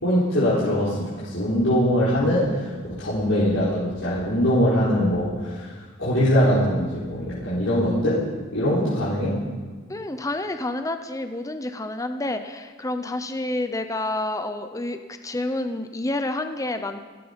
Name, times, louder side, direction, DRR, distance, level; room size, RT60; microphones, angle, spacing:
voice 1, 0.0-2.7 3.0-5.7 6.0-8.2 8.5-9.3, equal, 65° left, -11 dB, 4.6 m, -22 dB
voice 2, 9.9-17.0, left 2 dB, 15° left, 8 dB, 0.7 m, -29 dB
16.5 x 16.0 x 5.2 m, 1.5 s
head